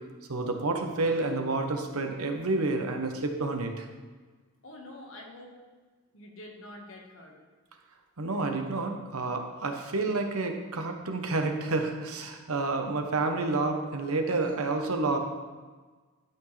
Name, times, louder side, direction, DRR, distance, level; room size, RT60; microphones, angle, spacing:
voice 1, 0.3-3.9 8.2-15.2, right 3 dB, 80° right, 4 dB, 1.0 m, -29 dB
voice 2, 4.6-5.5 6.1-7.3, left 1 dB, 65° left, 0 dB, 1.5 m, -46 dB
11.5 x 5.9 x 3.3 m, 1.4 s
head